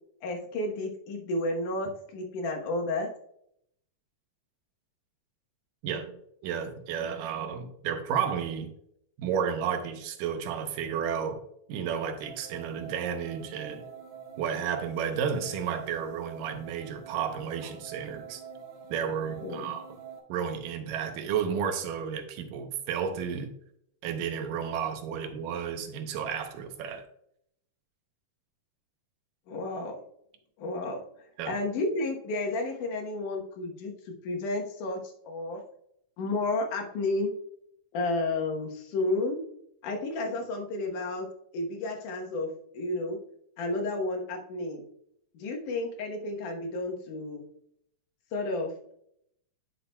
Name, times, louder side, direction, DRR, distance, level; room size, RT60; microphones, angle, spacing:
voice 1, 0.2-3.1 19.4-19.8 29.5-30.0 30.6-31.0 31.5-33.9 34.2-35.0 35.3-35.6 36.2-37.3 37.9-39.4 39.8-41.3 41.5-43.2 43.6-44.9 45.3-47.4 48.3-48.9, left 2 dB, 75° left, 2 dB, 2.5 m, -31 dB
voice 2, 5.8-6.1 6.4-8.7 9.2-11.4 11.7-13.9 14.4-18.4 18.9-20.0 20.3-23.5 24.0-27.0 31.4-31.5, right 7 dB, 80° right, 7 dB, 2.4 m, -32 dB
sound 1, 12.2-20.2, right 7 dB, 65° right, 2.5 m, -46 dB
10.5 x 5.8 x 2.2 m, 0.72 s
omnidirectional pair, 3.8 m